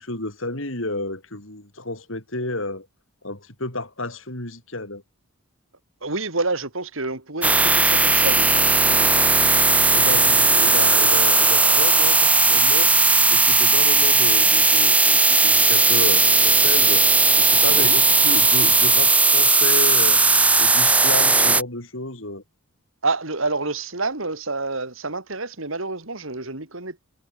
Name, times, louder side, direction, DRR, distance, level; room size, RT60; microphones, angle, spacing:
voice 1, 0.0-2.9 3.2-5.0 9.9-17.1 17.3-20.2 20.6-22.4, left 2 dB, 65° left, 5.4 m, -31 dB
voice 2, 6.0-9.1 17.7-18.0 23.0-27.0, right 3 dB, 65° right, 3.4 m, -28 dB
sound 1, 7.4-21.6, right 3 dB, 5° right, 0.3 m, -17 dB
head